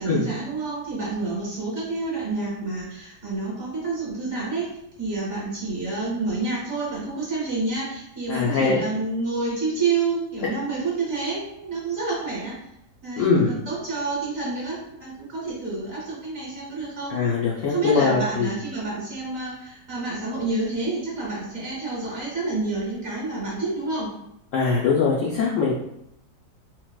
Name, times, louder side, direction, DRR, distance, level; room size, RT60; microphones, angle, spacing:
voice 1, 0.0-12.5 13.0-17.2 17.7-24.1, right 3 dB, 50° right, -5 dB, 1.1 m, -28 dB
voice 2, 8.3-8.8 13.2-13.5 17.1-18.5 24.5-25.7, left 5 dB, 90° left, -4 dB, 0.6 m, -22 dB
4.3 x 2.0 x 2.3 m, 0.79 s
omnidirectional pair, 1.9 m